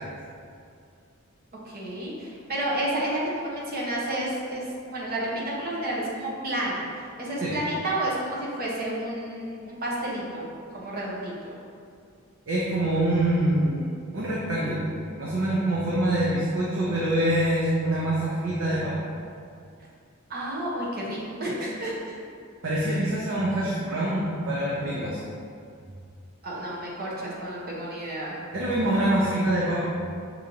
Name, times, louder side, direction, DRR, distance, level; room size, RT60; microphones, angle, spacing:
voice 1, 1.6-6.8 7.2-11.5 20.3-22.1 26.4-28.3, right 1 dB, 50° right, -5 dB, 1.0 m, -31 dB
voice 2, 12.5-14.9 15.2-18.9 22.6-25.2 28.5-29.8, right 1 dB, 65° right, -7 dB, 0.7 m, -25 dB
6.1 x 2.7 x 2.7 m, 2.3 s
head